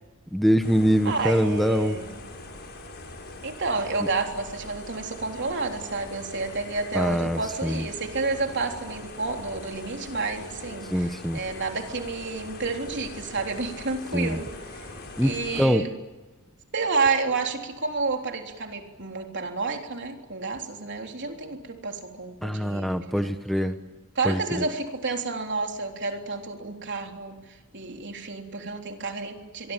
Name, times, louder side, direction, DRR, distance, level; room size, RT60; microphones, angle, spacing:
voice 1, 0.3-2.0 6.9-7.8 10.9-11.4 14.1-14.4 15.2-15.8 22.4-23.8 24.2-24.6, equal, ahead, 8 dB, 1.0 m, -24 dB
sound 1, 0.6-15.6, left 2 dB, 45° left, 6.2 m, -42 dB
voice 2, 1.1-2.3 3.4-14.9 15.2-15.9 16.7-23.3 24.2-27.3 27.7-29.7, right 3 dB, 55° right, 3 dB, 3.6 m, -30 dB
24.5 x 23.0 x 9.1 m, 1.2 s
head